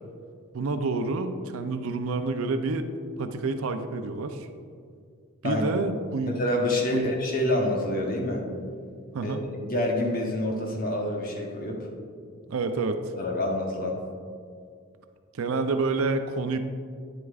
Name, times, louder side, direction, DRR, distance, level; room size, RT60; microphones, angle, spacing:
voice 1, 0.5-2.9 3.2-4.5 5.4-6.3 6.9-7.1 9.1-9.4 12.5-13.1 15.3-16.6, right 3 dB, 80° right, 8 dB, 0.5 m, -28 dB
voice 2, 6.4-8.4 9.2-9.3 9.6-11.9 13.2-14.0, left 1 dB, 40° left, 0 dB, 1.0 m, -27 dB
9.5 x 8.0 x 2.4 m, 2.2 s
head